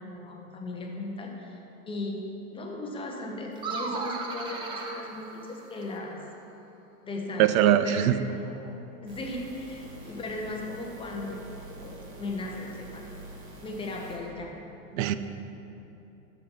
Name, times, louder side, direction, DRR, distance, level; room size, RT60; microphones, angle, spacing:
voice 1, 0.0-1.6 1.9-2.3 2.5-6.2 7.0-7.5 7.8-8.8 9.0-11.4 11.8-13.1 13.6-14.5, left 2 dB, 15° left, 0 dB, 0.8 m, -37 dB
sound 1, 3.6-6.1, right 3 dB, 15° right, 0.3 m, -36 dB
voice 2, 7.4-8.2 14.9-15.2, right 11 dB, 75° right, 12 dB, 0.6 m, -21 dB
sound 2, 9.1-14.2, right 2 dB, 50° right, 2.2 m, -46 dB
11.0 x 6.9 x 4.4 m, 2.9 s
supercardioid pair, 150°, 41 cm